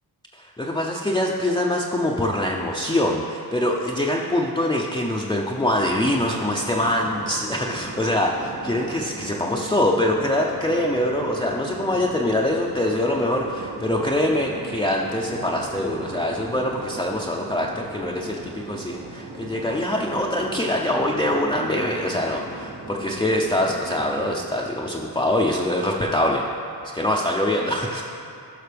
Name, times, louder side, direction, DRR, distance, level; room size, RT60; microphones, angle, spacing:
voice 1, 0.4-26.4 26.9-28.0, left 1 dB, 10° left, -3 dB, 0.6 m, -24 dB
sound 1, 5.7-24.5, right 2 dB, 60° right, 1.1 m, -38 dB
11.5 x 5.7 x 3.4 m, 2.5 s
cardioid pair, 65°, 41 cm